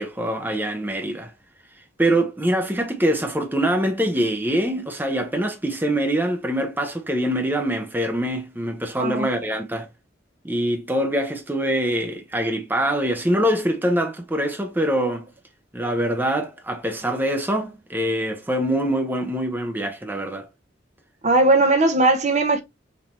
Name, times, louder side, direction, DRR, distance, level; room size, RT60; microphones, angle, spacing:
voice 1, 0.0-1.3 2.0-9.9 10.4-15.3 15.7-20.5, right 1 dB, 10° right, 0.7 m, -24 dB
voice 2, 9.0-9.3 21.2-22.6, right 2 dB, 40° right, 0.8 m, -18 dB
5.2 x 2.8 x 2.9 m
head